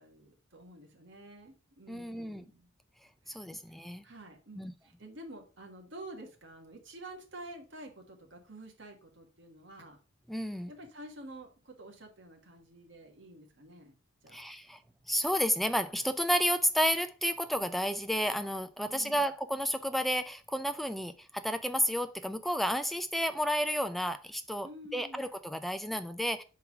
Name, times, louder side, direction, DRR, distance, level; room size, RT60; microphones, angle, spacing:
voice 1, 0.0-2.7 3.2-3.8 4.0-10.0 10.7-13.9 14.2-14.4 18.8-19.3 24.6-25.3, right 1 dB, 60° right, 1.6 m, -49 dB
voice 2, 1.9-2.4 3.3-4.0 4.6-4.7 10.3-10.7 14.3-14.8 15.1-26.4, equal, ahead, 0.4 m, -31 dB
5.5 x 4.6 x 4.7 m
head